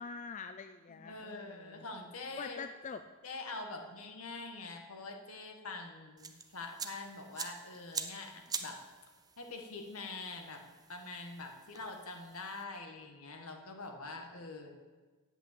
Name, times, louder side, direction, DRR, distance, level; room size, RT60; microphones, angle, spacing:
voice 1, 0.0-1.9 2.4-3.0, left 5 dB, 35° left, 9 dB, 0.3 m, -45 dB
voice 2, 0.9-2.6 3.2-8.8 9.4-10.6 10.9-14.7, left 3 dB, 75° left, 3 dB, 1.6 m, -45 dB
sound 1, 6.2-12.6, right 5 dB, 15° right, 0.6 m, -46 dB
8.2 x 8.2 x 8.5 m, 1.4 s
head